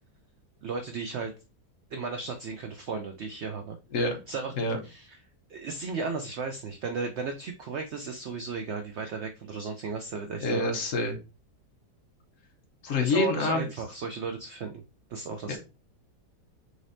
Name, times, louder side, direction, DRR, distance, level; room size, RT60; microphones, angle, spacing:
voice 1, 0.6-1.3 1.9-3.8 4.3-4.5 4.8-5.2 5.5-10.7 13.0-14.7 15.1-15.6, right 4 dB, 85° right, 5 dB, 0.6 m, -35 dB
voice 2, 10.4-11.2 12.8-13.7 15.5-15.6, left 3 dB, 60° left, 3 dB, 1.0 m, -26 dB
4.0 x 3.2 x 2.6 m, 0.31 s
omnidirectional pair, 1.7 m